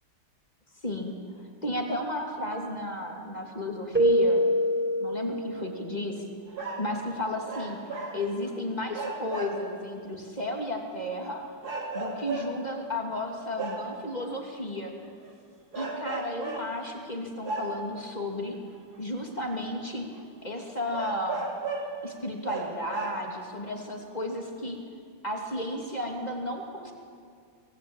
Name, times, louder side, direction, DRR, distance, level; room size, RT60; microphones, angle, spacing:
voice 1, 0.8-4.5 5.0-6.2 6.8-7.8 8.1-11.5 11.9-14.9 15.7-18.6 19.0-20.1 20.4-21.5 22.0-24.8 25.2-26.9, left 1 dB, 20° left, 1 dB, 2.8 m, -33 dB
Keyboard (musical), 4.0-6.0, equal, 5° right, 0.9 m, -24 dB
sound 1, 6.5-7.0 7.5-8.6 8.9-9.8 10.5-10.6 11.6-12.8 13.6-14.0 15.1-15.3 15.7-16.8 17.4-18.1 18.9-19.0 19.7-19.8 20.2-20.3 20.9-22.0 22.4-23.5 24.2-24.3, right 3 dB, 50° right, 3.3 m, -35 dB
24.5 x 20.0 x 8.8 m, 2.2 s
omnidirectional pair, 2.2 m